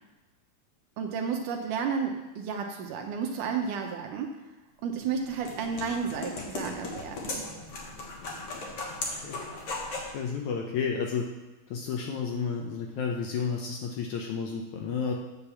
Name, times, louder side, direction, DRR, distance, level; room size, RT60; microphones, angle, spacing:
voice 1, 1.0-4.3 4.8-7.5, right 6 dB, 75° right, 3 dB, 2.2 m, -32 dB
sound 1, 4.9-10.2, left 2 dB, 55° left, 1.8 m, -37 dB
voice 2, 10.1-11.2 11.7-15.1, left 6 dB, 70° left, 1 dB, 1.9 m, -31 dB
9.0 x 5.3 x 7.1 m, 1.1 s
omnidirectional pair, 4.1 m